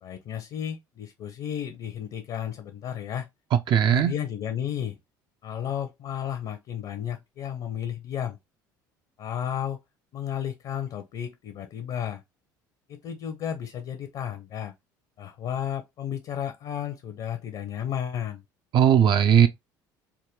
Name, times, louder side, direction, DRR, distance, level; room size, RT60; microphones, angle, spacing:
voice 1, 0.0-3.3 3.9-5.0 5.4-8.4 9.2-9.8 10.1-12.2 12.9-14.7 15.2-18.4, left 9 dB, 50° left, 0.6 m, -33 dB
voice 2, 3.5-4.1 18.7-19.5, right 9 dB, 45° right, 0.3 m, -18 dB
3.5 x 2.2 x 2.9 m
hypercardioid pair, 70°, 10 cm